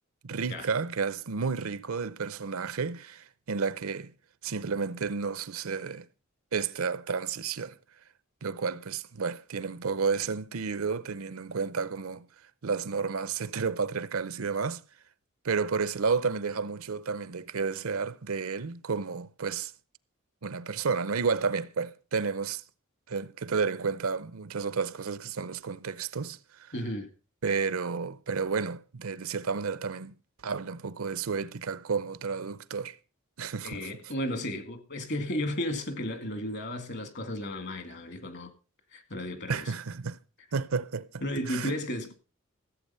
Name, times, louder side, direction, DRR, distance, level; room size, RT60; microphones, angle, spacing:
voice 1, 0.2-4.1 4.4-6.1 6.5-7.8 8.4-12.3 12.6-14.8 15.4-19.7 20.4-22.6 23.1-26.7 27.4-30.1 30.4-33.0 33.4-33.9 39.5-40.2 40.5-41.2 41.5-41.7, right 5 dB, 70° right, 0.7 m, -31 dB
voice 2, 26.7-27.1 33.6-38.5 38.9-39.7 41.2-42.1, left 1 dB, 55° left, 2.0 m, -34 dB
15.0 x 8.0 x 5.5 m
head